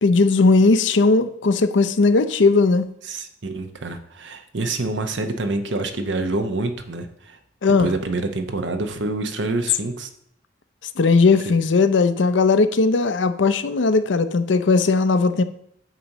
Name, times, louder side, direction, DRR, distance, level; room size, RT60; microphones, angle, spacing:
voice 1, 0.0-2.9 7.6-7.9 11.0-15.4, left 3 dB, 80° left, 0.6 m, -17 dB
voice 2, 3.0-7.4 7.8-10.1 11.5-11.6, right 2 dB, 80° right, 0.9 m, -27 dB
9.0 x 3.0 x 6.5 m
head